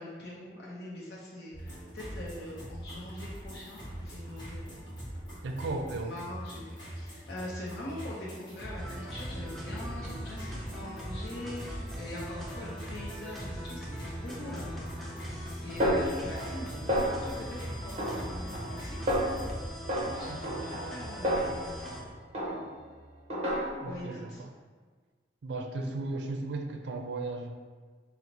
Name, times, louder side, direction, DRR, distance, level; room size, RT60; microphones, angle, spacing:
voice 1, 0.0-4.7 5.9-14.8 15.6-19.0 20.1-22.0 23.8-24.4 25.8-25.9, left 1 dB, 75° left, -5 dB, 0.6 m, -43 dB
sound 1, 1.5-19.7, equal, 25° left, 1.1 m, -43 dB
voice 2, 5.4-6.1 20.3-20.6 23.8-24.5 25.4-27.5, right 2 dB, 80° right, 5 dB, 0.4 m, -36 dB
sound 2, 8.7-22.0, equal, ahead, 0.4 m, -41 dB
Snare drum, 15.8-16.6 16.9-17.5 18.0-18.8 19.1-19.5 19.9-22.0 22.3-22.9 23.3-24.0, equal, 40° right, 0.7 m, -31 dB
4.5 x 2.0 x 3.9 m, 1.5 s
head